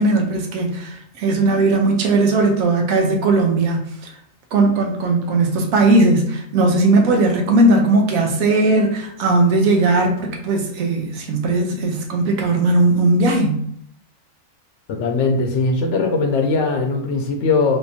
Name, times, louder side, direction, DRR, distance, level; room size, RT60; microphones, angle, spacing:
voice 1, 0.0-3.8 4.5-13.6, right 2 dB, 85° right, 2 dB, 1.1 m, -17 dB
voice 2, 14.9-17.8, left 3 dB, 70° left, 4 dB, 0.8 m, -20 dB
3.5 x 2.9 x 2.7 m, 0.69 s
omnidirectional pair, 1.4 m